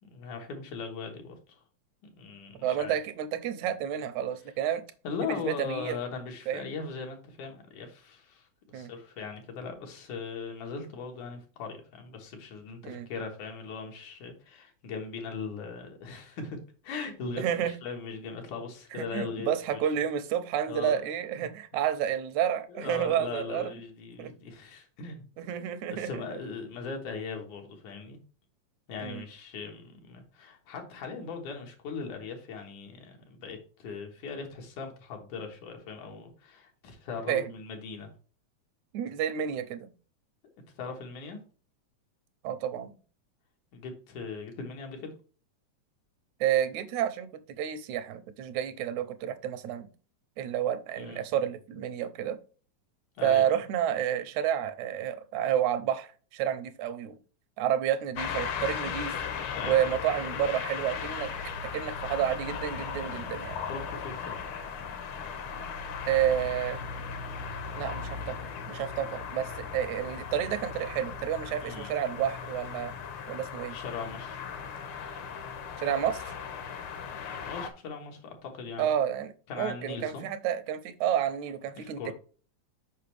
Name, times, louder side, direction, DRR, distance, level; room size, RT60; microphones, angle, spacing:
voice 1, 0.0-1.6 2.2-3.0 5.0-8.5 8.7-16.6 16.8-19.8 20.7-21.0 21.4-21.5 22.7-25.2 25.9-28.2 28.9-38.1 40.8-41.4 43.7-45.1 51.0-51.2 53.2-53.5 59.5-59.8 63.7-64.5 71.6-71.9 73.7-74.4 77.2-78.9 79.5-80.2 81.8-82.1, left 5 dB, 85° left, 2.9 m, -39 dB
voice 2, 2.6-4.8 5.2-6.0 6.5-6.7 8.7-8.9 12.8-13.1 17.4-17.7 18.9-23.7 24.2-24.3 25.4-26.2 29.0-29.2 37.3-37.5 38.9-39.9 42.4-42.9 46.4-49.9 50.4-52.4 53.2-57.2 57.6-59.2 59.6-61.3 61.7-63.6 66.1-66.8 67.7-68.4 68.7-72.9 73.3-73.8 75.8-76.3 78.8-82.1, right 10 dB, 80° right, 2.0 m, -30 dB
sound 1, 58.2-77.7, left 6 dB, 65° left, 1.3 m, -37 dB
6.7 x 5.2 x 3.3 m
omnidirectional pair, 3.4 m